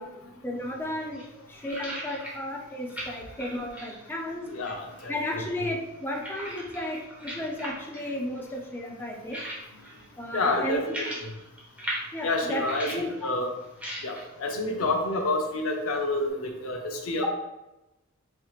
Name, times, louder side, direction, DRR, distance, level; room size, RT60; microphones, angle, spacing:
voice 1, 0.0-4.5 5.1-9.4 10.2-11.1 12.1-13.3 17.2-17.3, left 1 dB, 10° left, -2 dB, 0.5 m, -34 dB
sound 1, 0.6-16.3, equal, 5° right, 0.9 m, -42 dB
voice 2, 4.5-5.4 10.3-11.3 12.2-13.5 14.0-17.3, left 2 dB, 90° left, 2 dB, 0.6 m, -29 dB
4.3 x 3.2 x 2.4 m, 0.98 s
head